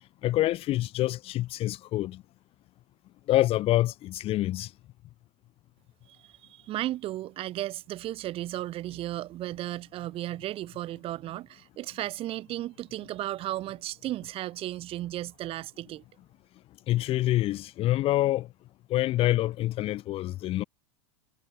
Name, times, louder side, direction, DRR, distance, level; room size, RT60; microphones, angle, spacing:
voice 1, 0.2-2.2 3.3-4.7 16.9-18.5 18.9-20.6, left 15 dB, 40° left, 4.9 m, -26 dB
voice 2, 6.1-16.0, right 14 dB, 40° right, 7.5 m, -35 dB
hypercardioid pair, 90°, 14 cm